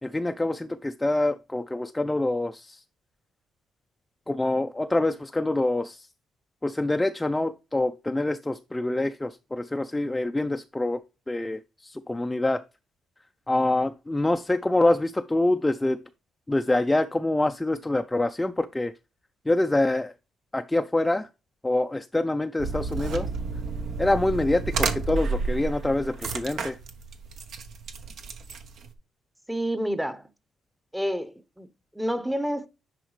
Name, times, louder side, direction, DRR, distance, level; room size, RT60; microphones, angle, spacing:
voice 1, 0.0-2.8 4.3-6.1 6.6-11.0 11.3-12.6 13.5-16.0 16.5-18.9 19.5-20.1 20.5-21.3 21.6-23.3 24.0-26.8, left 2 dB, 15° left, 0.3 m, -25 dB
sound 1, 22.6-28.9, right 4 dB, 70° right, 0.9 m, -31 dB
voice 2, 29.5-30.3 30.9-31.7 31.9-32.7, equal, 5° right, 0.7 m, -29 dB
10.0 x 4.0 x 3.1 m
cardioid pair, 90°, 0 cm